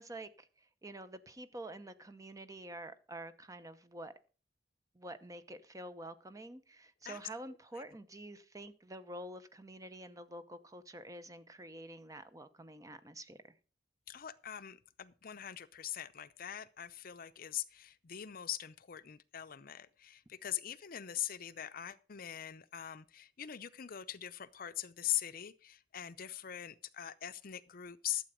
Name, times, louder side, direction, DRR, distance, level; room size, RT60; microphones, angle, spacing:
voice 1, 0.0-4.1 4.9-13.4, right 1 dB, 20° right, 0.8 m, -48 dB
voice 2, 14.1-28.2, left 11 dB, 55° left, 0.6 m, -42 dB
12.5 x 7.9 x 5.1 m
head